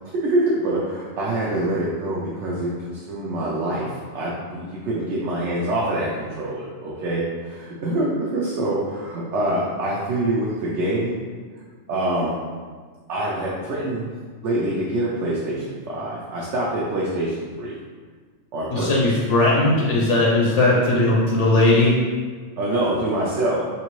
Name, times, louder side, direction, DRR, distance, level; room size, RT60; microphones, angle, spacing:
voice 1, 0.0-11.2 11.9-12.4 13.1-14.1 14.4-17.7 18.5-19.1 22.6-23.6, right 1 dB, 70° right, -5 dB, 0.9 m, -25 dB
voice 2, 18.7-21.9, left 2 dB, 70° left, -4 dB, 0.9 m, -18 dB
3.2 x 2.6 x 3.0 m, 1.5 s
omnidirectional pair, 1.3 m